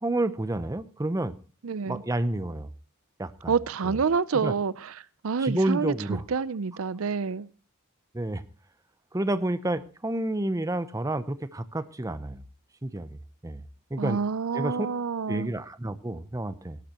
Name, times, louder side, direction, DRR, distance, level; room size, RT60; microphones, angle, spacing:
voice 1, 0.0-1.3 1.9-2.7 3.2-3.5 3.8-4.0 4.4-4.5 5.4-6.2 8.1-8.4 9.1-12.4 12.8-13.6 13.9-14.2 14.5-14.9 15.3-16.8, right 1 dB, 15° right, 0.7 m, -29 dB
voice 2, 1.6-2.0 3.5-7.5 14.0-15.5, right 5 dB, 75° right, 0.5 m, -28 dB
18.0 x 12.0 x 2.9 m
head